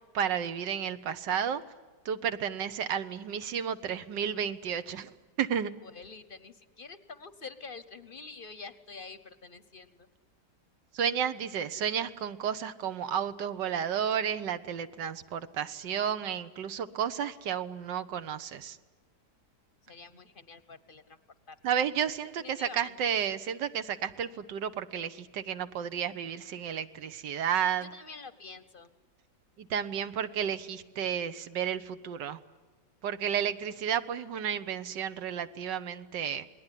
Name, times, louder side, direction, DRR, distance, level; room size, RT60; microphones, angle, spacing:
voice 1, 0.1-1.6 2.0-5.7 10.9-18.8 21.6-27.9 29.6-32.4 33.0-36.5, right 8 dB, 85° right, 11 dB, 1.7 m, -32 dB
voice 2, 5.8-10.1 19.8-21.0 21.5-21.6 22.4-23.0 27.9-28.9, left 4 dB, 40° left, 13 dB, 0.8 m, -47 dB
28.5 x 20.0 x 9.9 m, 1.4 s
omnidirectional pair, 1.9 m